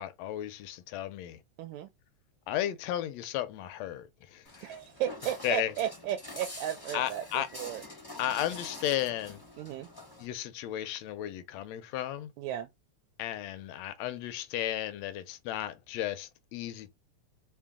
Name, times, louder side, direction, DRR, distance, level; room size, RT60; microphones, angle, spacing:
voice 1, 0.0-1.4 2.5-4.8 5.4-5.7 6.9-7.5 8.2-9.4 10.2-12.3 13.2-16.9, left 12 dB, 75° left, 1.7 m, -34 dB
voice 2, 1.6-1.9 4.6-7.8 9.6-9.9 12.4-12.7, right 11 dB, 80° right, 1.8 m, -34 dB
Walk footsteps, 4.4-10.2, left 1 dB, 30° left, 0.4 m, -46 dB
4.6 x 2.1 x 3.5 m
omnidirectional pair, 3.3 m